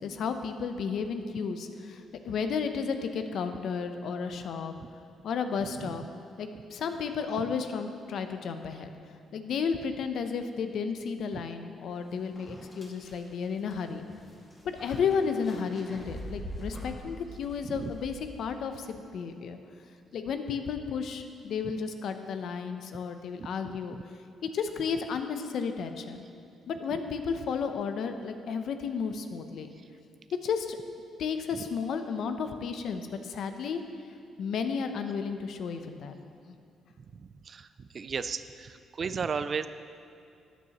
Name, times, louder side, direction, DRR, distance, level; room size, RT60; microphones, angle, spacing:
voice 1, 0.0-4.7 5.2-6.0 6.4-8.9 9.3-14.0 14.6-18.9 19.1-19.6 20.1-24.0 24.4-26.2 26.7-29.7 30.4-30.8 31.2-33.8 34.4-36.1 36.5-36.6, left 6 dB, 70° left, 7 dB, 0.7 m, -33 dB
sound 1, 11.9-12.0 12.4-18.7, equal, 35° left, 2.2 m, -44 dB
voice 2, 23.4-23.8 26.9-27.0 37.0-39.7, right 5 dB, 45° right, 12 dB, 0.4 m, -35 dB
13.0 x 9.2 x 3.0 m, 2.4 s
cardioid pair, 90°, 0 cm